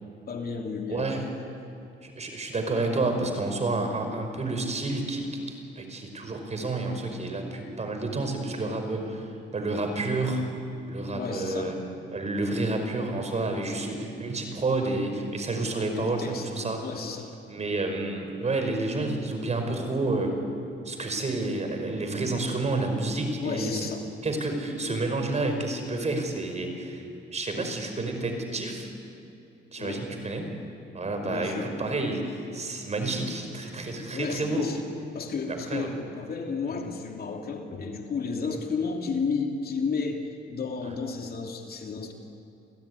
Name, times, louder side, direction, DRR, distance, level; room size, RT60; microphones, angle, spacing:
voice 1, 0.3-1.1 11.1-11.8 12.4-12.6 15.9-16.5 16.8-17.3 23.4-24.0 24.8-25.0 27.5-27.7 29.8-30.0 31.2-31.8 34.0-34.8 35.1-42.1, left 5 dB, 50° left, 2 dB, 2.9 m, -32 dB
voice 2, 0.9-1.3 2.0-9.3 9.5-10.5 10.9-11.8 12.1-16.9 17.5-20.3 20.9-23.8 24.2-27.1 27.3-28.9 29.7-30.5 30.9-34.7 35.5-35.9 38.5-38.6 40.8-40.9, right 2 dB, 35° right, 5 dB, 5.3 m, -29 dB
28.0 x 16.5 x 9.7 m, 2.8 s
cardioid pair, 90°, 20 cm